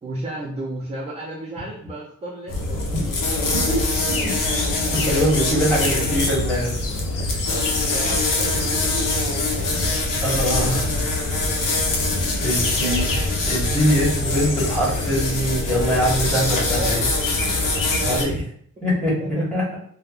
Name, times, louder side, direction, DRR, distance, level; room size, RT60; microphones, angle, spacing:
voice 1, 0.0-3.1 3.5-3.7 7.5-9.9 12.5-13.1 16.8-17.1 18.0-18.4 19.2-19.4, right 1 dB, 20° right, -4 dB, 0.4 m, -34 dB
sound 1, 2.5-18.2, left 2 dB, 90° left, 0.7 m, -23 dB
voice 2, 5.0-6.7 7.3-7.4 10.2-11.0 12.4-13.2 13.5-17.0 18.0-18.4 18.8-19.6, equal, 5° left, -7 dB, 1.3 m, -23 dB
3.4 x 2.1 x 2.4 m, 0.62 s
wide cardioid pair, 145°, 31 cm